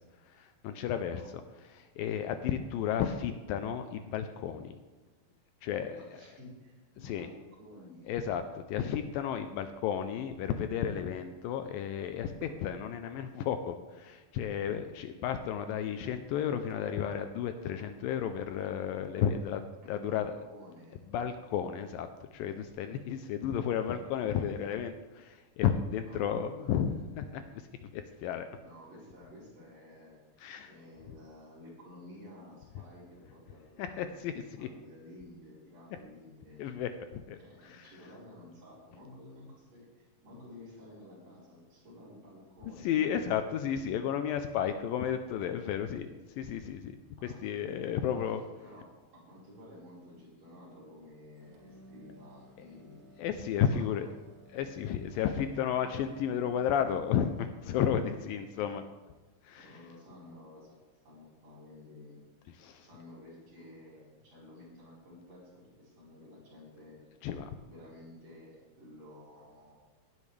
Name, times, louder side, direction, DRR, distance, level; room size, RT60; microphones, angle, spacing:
voice 1, 0.3-1.2 1.7-4.8 5.6-6.2 7.0-7.3 8.1-19.6 19.9-20.3 21.1-28.5 30.4-30.7 33.8-34.7 36.6-37.4 37.6-37.9 42.8-48.4 53.2-54.1 54.5-58.8 59.4-59.7 62.6-62.9 67.2-67.5, left 8 dB, 80° left, 8 dB, 2.2 m, -33 dB
voice 2, 6.0-8.3 19.8-21.1 24.3-24.5 26.0-26.8 28.6-34.0 34.6-36.7 37.4-42.9 44.6-44.9 47.2-47.6 48.1-48.8 49.1-53.0 53.5-54.1 58.5-58.8 59.6-60.8 61.0-62.2 62.8-67.0 67.7-69.7, left 1 dB, 45° right, -7 dB, 5.9 m, -52 dB
sound 1, 11.9-13.5 14.2-14.4 14.7-21.8 22.1-22.7, right 3 dB, 65° right, 3.9 m, -58 dB
sound 2, 51.4-57.6, equal, 85° right, 4.0 m, -57 dB
17.5 x 11.0 x 3.3 m, 1.3 s
omnidirectional pair, 4.3 m